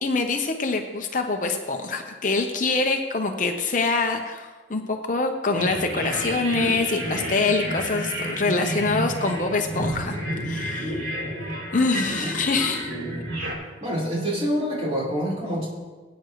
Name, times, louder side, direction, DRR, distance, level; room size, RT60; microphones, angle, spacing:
voice 1, 0.0-10.2 10.4-11.0 11.7-12.9, left 3 dB, 40° left, 4 dB, 0.7 m, -25 dB
sound 1, 5.6-13.5, right 1 dB, 85° right, 3.4 m, -30 dB
voice 2, 12.2-13.3 13.8-15.7, equal, 30° right, -6 dB, 4.0 m, -28 dB
19.5 x 9.2 x 3.1 m, 1.3 s
head